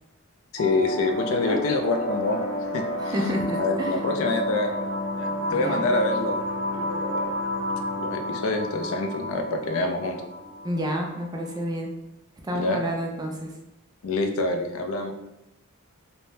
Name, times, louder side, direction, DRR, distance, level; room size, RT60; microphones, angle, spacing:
voice 1, 0.5-2.4 2.7-3.1 3.5-4.8 5.1-6.5 6.7-7.3 7.9-10.2 12.5-12.8 14.0-15.1, left 2 dB, 70° left, 5 dB, 0.4 m, -26 dB
sound 1, 0.6-11.6, left 1 dB, 75° right, 0.6 m, -31 dB
voice 2, 1.2-1.6 3.1-4.0 5.5-5.8 10.6-11.9 12.4-13.5, equal, 20° right, 0 dB, 0.3 m, -30 dB
2.6 x 2.0 x 3.1 m, 0.88 s
head